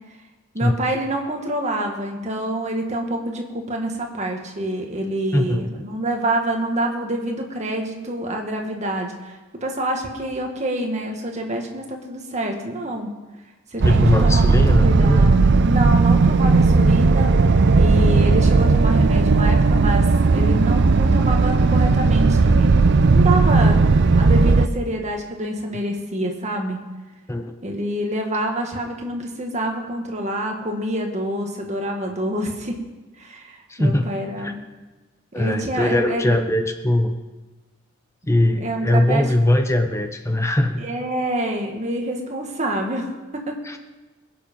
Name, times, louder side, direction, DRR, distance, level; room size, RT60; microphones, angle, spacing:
voice 1, 0.5-13.1 13.7-26.8 27.6-32.8 33.2-34.6 35.3-36.4 38.6-39.6 40.8-43.6, right 1 dB, 35° right, 2 dB, 1.8 m, -27 dB
voice 2, 5.3-5.7 13.8-15.3 27.3-27.5 33.7-34.0 34.4-34.5 35.3-37.1 38.3-40.8 43.7-43.8, left 1 dB, 15° left, 6 dB, 0.8 m, -20 dB
sound 1, 13.8-24.7, right 3 dB, 55° right, 0.5 m, -16 dB
21.5 x 7.4 x 5.4 m, 1.2 s
head